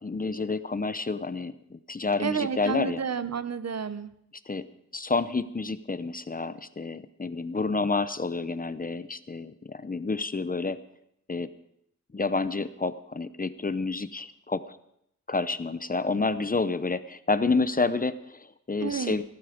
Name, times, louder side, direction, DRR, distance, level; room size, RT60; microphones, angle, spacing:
voice 1, 0.0-3.0 4.5-4.7 4.9-10.8 11.3-11.5 12.1-14.8 15.3-19.2, left 3 dB, 30° left, 13 dB, 0.7 m, -29 dB
voice 2, 2.2-4.1 18.8-19.2, right 6 dB, 55° right, 13 dB, 0.9 m, -30 dB
18.0 x 12.0 x 5.1 m, 0.75 s
wide cardioid pair, 75°, 31 cm